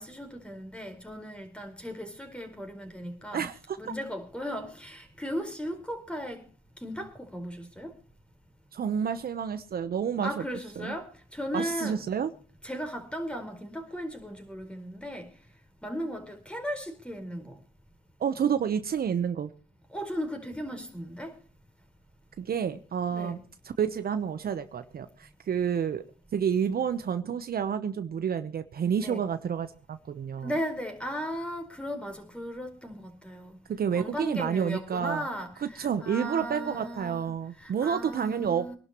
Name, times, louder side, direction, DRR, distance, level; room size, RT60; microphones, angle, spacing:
voice 1, 0.0-3.5 3.8-6.4 6.8-7.9 10.2-12.0 12.6-15.3 15.8-17.6 19.9-21.3 23.1-23.4 29.0-29.2 30.4-33.6 33.9-38.8, equal, 5° left, 4.7 m, -36 dB
voice 2, 3.3-3.8 8.7-10.4 10.8-11.0 11.5-12.3 18.2-19.5 22.4-23.4 23.6-26.0 26.3-30.5 33.7-35.3 35.6-38.7, right 7 dB, 50° right, 1.0 m, -29 dB
24.5 x 12.0 x 3.1 m
cardioid pair, 90°, 20 cm